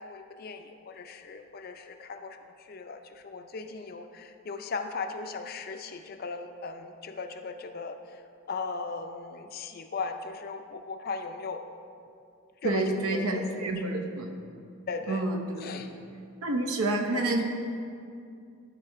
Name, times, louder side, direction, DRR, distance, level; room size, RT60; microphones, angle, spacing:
voice 1, 0.0-2.4 2.7-8.0 8.5-11.6 12.6-13.9 14.9-15.3 15.6-15.9, left 4 dB, 45° left, 7 dB, 0.4 m, -37 dB
voice 2, 12.6-14.4 15.1-15.9 16.4-17.4, right 2 dB, 85° right, 3 dB, 0.9 m, -29 dB
12.0 x 4.2 x 4.5 m, 2.5 s
head